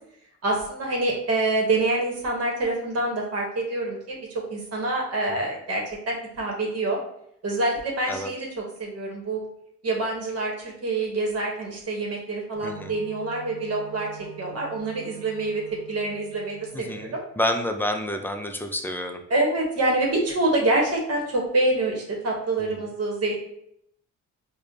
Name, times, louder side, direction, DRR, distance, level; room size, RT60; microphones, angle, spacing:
voice 1, 0.4-7.0 7.4-9.4 9.8-14.1 14.4-15.6 15.9-17.2 19.3-23.4, right 2 dB, 55° right, -1 dB, 1.1 m, -26 dB
Wind instrument woodwind instrument, 12.5-17.2, right 6 dB, 80° right, 0.9 m, -44 dB
voice 2, 12.6-12.9 16.7-19.2 22.6-22.8, left 1 dB, 5° left, 5 dB, 0.4 m, -29 dB
4.8 x 2.2 x 2.7 m, 0.74 s
cardioid pair, 90°, 30 cm